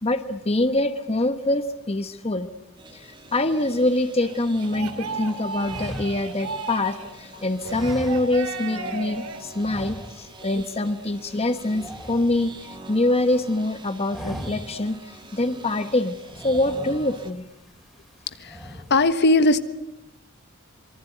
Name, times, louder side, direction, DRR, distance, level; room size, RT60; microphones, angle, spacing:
voice 1, 0.0-2.5 2.9-16.2 16.4-17.4, left 1 dB, 30° left, 9 dB, 1.1 m, -25 dB
sound 1, 2.8-17.3, right 2 dB, 20° right, 2.1 m, -44 dB
sound 2, 4.2-7.1 7.6-9.4, right 4 dB, 90° right, 3.6 m, -34 dB
sound 3, 5.6-7.1 7.6-8.7 9.0-9.2 9.6-10.5 10.7-11.0 11.2-13.0 13.4-13.7 14.0-14.9 15.3-15.4 16.2-17.3 17.8-18.1 18.4-19.0, equal, ahead, 3.8 m, -38 dB
voice 2, 18.9-19.6, left 2 dB, 55° left, 11 dB, 1.4 m, -18 dB
26.5 x 24.0 x 9.2 m, 0.89 s
head